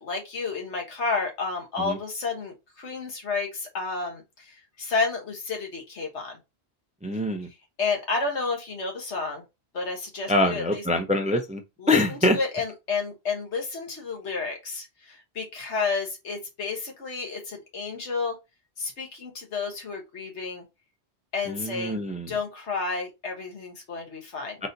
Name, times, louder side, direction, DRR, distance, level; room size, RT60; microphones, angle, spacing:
voice 1, 0.0-4.2 4.8-6.4 7.8-9.4 9.7-10.8 11.8-12.0 12.3-18.4 18.8-20.6 21.3-22.0 22.3-24.6, left 4 dB, 80° left, 1.6 m, -31 dB
voice 2, 7.0-7.5 10.3-11.6 11.9-12.4 21.5-22.4 24.6-24.7, left 1 dB, 10° right, 0.4 m, -24 dB
4.0 x 3.9 x 2.7 m
omnidirectional pair, 1.1 m